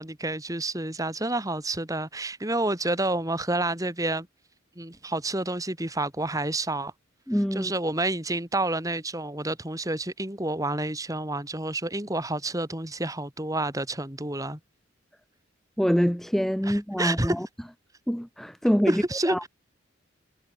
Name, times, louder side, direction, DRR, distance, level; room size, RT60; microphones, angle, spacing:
voice 1, 0.0-4.3 4.8-6.9 7.5-14.6 16.6-17.3 18.9-19.5, right 2 dB, 15° right, 2.9 m, -29 dB
voice 2, 7.3-7.7 15.8-17.5 18.1-19.4, equal, ahead, 0.5 m, -25 dB
head